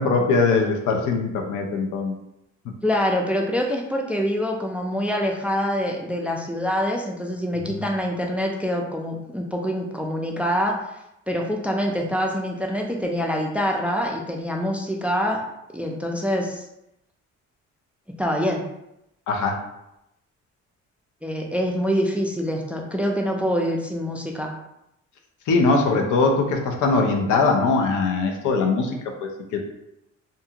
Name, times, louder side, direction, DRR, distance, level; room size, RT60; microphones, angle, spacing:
voice 1, 0.0-2.1 7.7-7.8 19.3-19.6 25.5-28.9 29.2-29.6, left 3 dB, 75° left, 2 dB, 0.6 m, -21 dB
voice 2, 2.8-10.7 11.3-15.4 15.7-16.7 18.2-18.6 21.2-24.5, equal, 5° right, 0 dB, 0.3 m, -25 dB
2.6 x 2.3 x 2.8 m, 0.85 s
cardioid pair, 90°, 30 cm